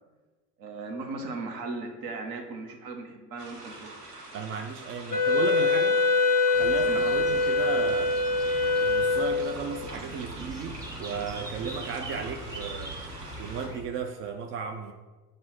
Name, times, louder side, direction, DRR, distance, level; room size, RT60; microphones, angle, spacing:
voice 1, 0.6-3.9 6.8-7.0, right 3 dB, 50° right, 4 dB, 1.2 m, -37 dB
sound 1, 3.4-13.7, right 2 dB, 85° right, 1.2 m, -45 dB
voice 2, 4.3-6.0 6.6-8.1 8.8-13.0 13.4-14.9, right 6 dB, 30° right, 6 dB, 0.4 m, -35 dB
Wind instrument woodwind instrument, 5.1-9.7, left 3 dB, 20° left, 0.8 m, -24 dB
sound 2, 6.5-13.8, right 1 dB, 10° right, 0.9 m, -41 dB
7.4 x 2.6 x 5.7 m, 1.3 s
figure-of-eight pair, 75°, 46 cm